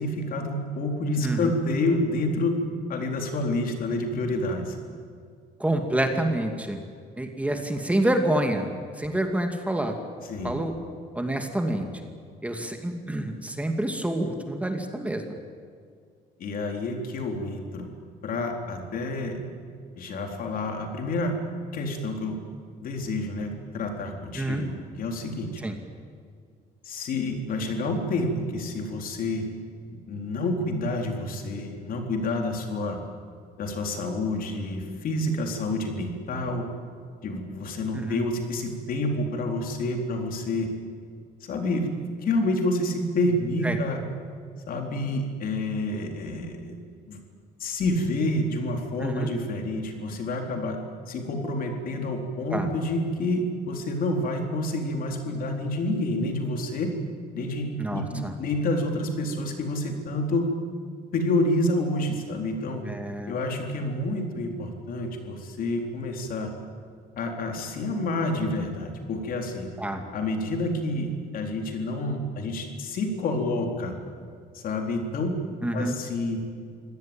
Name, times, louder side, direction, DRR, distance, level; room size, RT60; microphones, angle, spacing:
voice 1, 0.0-2.6 2.9-4.8 10.3-10.6 16.4-17.9 18.2-19.4 19.9-21.4 21.7-22.4 22.8-24.7 25.0-25.6 26.8-29.5 29.9-33.0 33.6-36.7 37.2-40.7 41.4-41.9 42.2-44.0 44.7-46.8 47.1-47.2 47.6-50.8 51.1-56.9 57.3-60.5 61.1-62.8 63.3-66.5 67.2-69.7 70.1-74.0 74.5-75.4 75.7-76.5, left 2 dB, 60° left, 3 dB, 4.0 m, -28 dB
voice 2, 1.2-1.5 5.6-6.8 7.2-8.7 9.0-9.9 10.4-10.7 11.1-11.9 12.4-15.4 24.4-24.7 25.6-25.7 37.9-38.2 43.6-43.8 49.0-49.3 52.5-52.7 57.8-58.3 62.8-63.3 69.8-70.0 75.6-76.0, right 1 dB, 10° right, 4 dB, 2.3 m, -27 dB
25.0 x 17.5 x 9.0 m, 2.2 s
cardioid pair, 110°, 17 cm